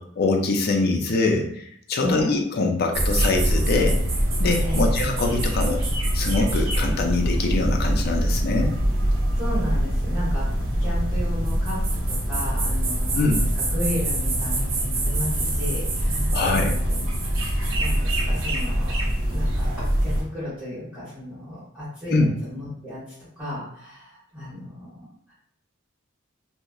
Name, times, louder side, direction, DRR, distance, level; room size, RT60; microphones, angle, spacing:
voice 1, 0.0-4.0 4.4-5.8 6.1-8.7 13.2-13.4 16.3-16.7 22.1-22.3, left 3 dB, 50° left, 3 dB, 0.4 m, -23 dB
voice 2, 2.0-2.3 4.6-4.9 9.4-10.5 10.8-17.0 17.8-23.0 23.4-25.3, left 1 dB, 5° right, -12 dB, 1.3 m, -34 dB
sound 1, 2.9-20.2, right 1 dB, 70° right, 0.7 m, -24 dB
2.7 x 2.0 x 2.3 m, 0.66 s
head